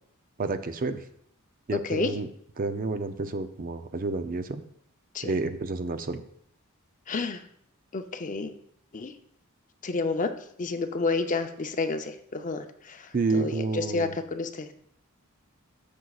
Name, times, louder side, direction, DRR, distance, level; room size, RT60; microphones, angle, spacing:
voice 1, 0.4-1.0 1.7-2.3 2.6-4.6 5.2-6.2 13.1-14.1, right 3 dB, 40° right, 9 dB, 0.5 m, -29 dB
voice 2, 7.1-7.4 7.9-8.5 8.9-9.1 9.8-10.3 10.6-14.7, left 3 dB, 35° left, 8 dB, 0.6 m, -30 dB
13.5 x 6.3 x 2.4 m, 0.68 s
head